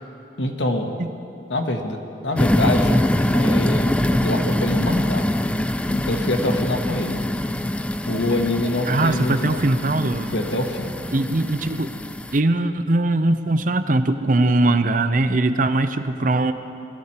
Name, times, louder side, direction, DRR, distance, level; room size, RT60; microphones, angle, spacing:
voice 1, 0.4-0.9 1.5-3.0 3.4-3.9 4.2-5.3 5.9-7.2 8.1-9.6 10.3-10.9, left 1 dB, 85° left, 3 dB, 1.5 m, -25 dB
sound 1, 2.4-12.4, left 1 dB, 5° left, 0.3 m, -23 dB
voice 2, 3.3-4.5 8.1-8.2 8.9-10.3 11.1-11.9 12.3-16.5, right 2 dB, 45° right, 10 dB, 0.7 m, -21 dB
21.5 x 14.0 x 4.4 m, 2.7 s
head